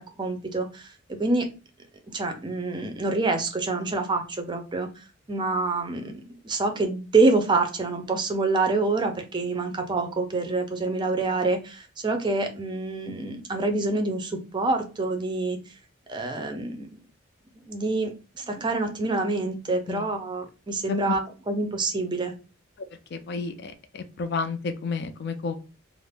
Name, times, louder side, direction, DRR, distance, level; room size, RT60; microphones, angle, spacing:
voice 1, 0.0-1.5 2.1-4.9 5.3-15.6 16.1-16.9 17.6-22.3, right 3 dB, 20° right, 5 dB, 0.5 m, -26 dB
voice 2, 23.1-25.5, left 4 dB, 55° left, 8 dB, 0.4 m, -31 dB
2.5 x 2.0 x 3.4 m, 0.32 s
head